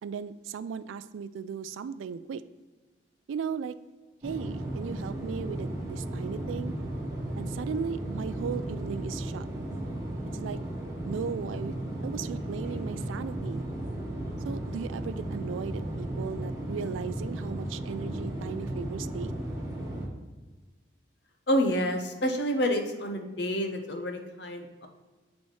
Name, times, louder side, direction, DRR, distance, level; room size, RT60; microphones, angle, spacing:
voice 1, 0.0-2.4 3.3-3.8 4.2-6.7 7.4-9.5 10.3-10.6 11.0-13.7 14.4-19.3, right 6 dB, 90° right, 14 dB, 0.3 m, -36 dB
sound 1, 4.2-20.1, right 1 dB, 15° right, 1.2 m, -35 dB
voice 2, 21.5-24.9, equal, 65° left, 5 dB, 0.7 m, -28 dB
8.0 x 4.1 x 3.1 m, 1.3 s
head